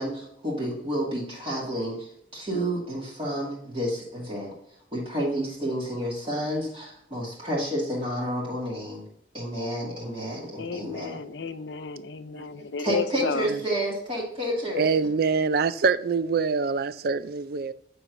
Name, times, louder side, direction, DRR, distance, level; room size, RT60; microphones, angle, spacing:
voice 1, 0.0-4.5 4.9-9.0 9.3-11.2 12.8-14.9, equal, 35° right, 2.2 m, -30 dB
voice 2, 10.5-13.5, left 5 dB, 85° left, 0.6 m, -32 dB
voice 3, 13.2-13.6 14.8-17.7, right 5 dB, 60° right, 0.4 m, -25 dB
9.1 x 4.6 x 2.6 m
head